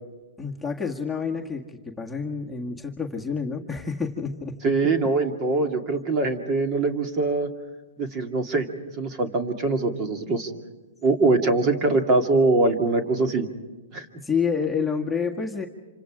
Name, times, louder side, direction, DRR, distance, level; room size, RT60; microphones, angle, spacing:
voice 1, 0.4-4.5 14.2-15.7, left 5 dB, 5° left, -2 dB, 1.8 m, -28 dB
voice 2, 4.6-7.5 8.0-8.7 9.0-10.5 11.0-13.5 13.9-14.1, right 3 dB, 30° right, 5 dB, 2.4 m, -23 dB
27.5 x 26.0 x 5.0 m, 1.2 s
hypercardioid pair, 135°, 0 cm